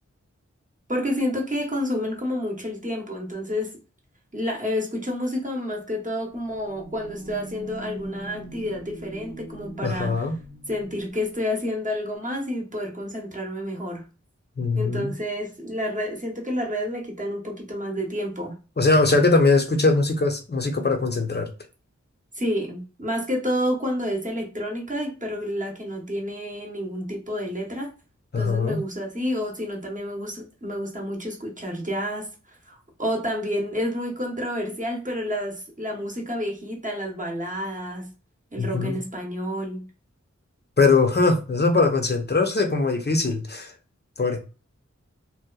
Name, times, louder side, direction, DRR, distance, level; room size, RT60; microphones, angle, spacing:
voice 1, 0.9-3.8 4.3-10.2 10.7-14.1 14.8-18.6 22.3-27.9 28.4-38.1 38.5-39.9, equal, 25° right, 0.9 m, -29 dB
sound 1, 6.3-11.1, right 1 dB, 85° right, 1.0 m, -41 dB
voice 2, 9.8-10.4 14.6-15.1 18.8-21.5 28.3-28.8 38.6-38.9 40.8-43.7 44.2-44.4, left 3 dB, 35° left, 0.6 m, -21 dB
2.7 x 2.2 x 2.3 m
wide cardioid pair, 40°, 29 cm